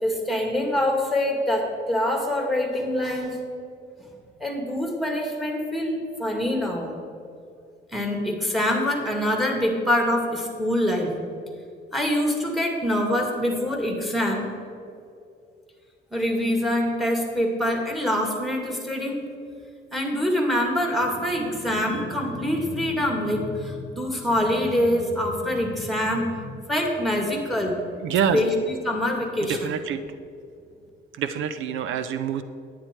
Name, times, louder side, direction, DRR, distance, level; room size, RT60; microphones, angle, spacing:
voice 1, 0.0-3.4 4.4-6.9 7.9-11.2 11.9-14.5 16.1-19.2 19.9-27.8 28.3-29.7, left 1 dB, ahead, 1 dB, 2.0 m, -25 dB
voice 2, 28.0-28.4 29.5-30.0 31.1-32.4, right 8 dB, 80° right, 11 dB, 0.5 m, -26 dB
9.9 x 9.3 x 4.5 m, 2.5 s
cardioid pair, 90°, 20 cm